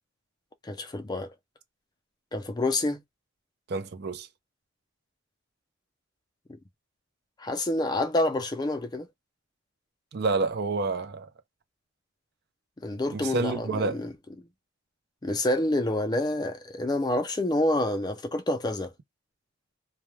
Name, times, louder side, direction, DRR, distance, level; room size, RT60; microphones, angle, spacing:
voice 1, 0.6-1.3 2.3-3.0 7.4-9.1 12.8-14.1 15.2-18.9, left 1 dB, 20° left, 0.4 m, -28 dB
voice 2, 3.7-4.3 10.1-11.3 13.1-14.0, right 3 dB, 55° right, 0.5 m, -28 dB
2.2 x 2.2 x 3.1 m
head